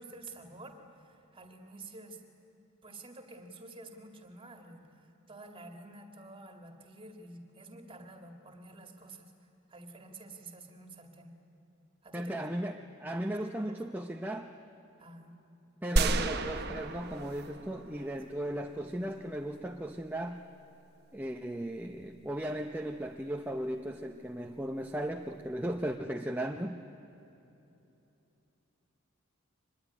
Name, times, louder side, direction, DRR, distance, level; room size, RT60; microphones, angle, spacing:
voice 1, 0.0-2.2 2.8-11.4 12.0-12.3 13.0-13.2 13.7-13.8 15.0-15.4 18.0-18.1, right 2 dB, 25° right, 4 dB, 2.2 m, -50 dB
voice 2, 12.1-14.5 15.8-20.4 21.1-26.8, right 1 dB, 10° right, 3 dB, 0.7 m, -36 dB
sound 1, 16.0-18.3, right 2 dB, 50° right, 1.1 m, -31 dB
24.5 x 20.5 x 9.9 m, 3.0 s
head